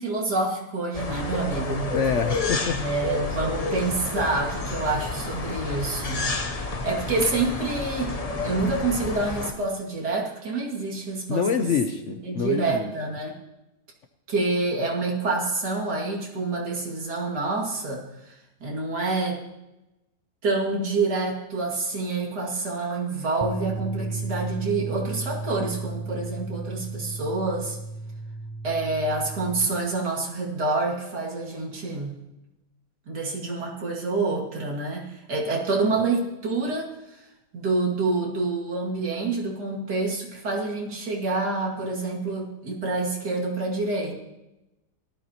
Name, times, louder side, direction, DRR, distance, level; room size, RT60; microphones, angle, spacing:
voice 1, 0.0-1.9 2.7-6.3 6.8-11.5 12.2-13.4 14.3-19.4 20.4-27.8 28.6-32.2 33.1-37.2 37.5-44.2, right 3 dB, 75° right, -2 dB, 2.9 m, -27 dB
sound 1, 0.9-9.5, left 3 dB, 35° left, 0.6 m, -30 dB
voice 2, 1.9-2.8 11.3-12.9, left 6 dB, 55° left, 7 dB, 0.9 m, -26 dB
sound 2, 23.4-29.7, right 3 dB, 15° right, 0.6 m, -34 dB
17.5 x 12.5 x 2.9 m, 0.97 s
omnidirectional pair, 1.8 m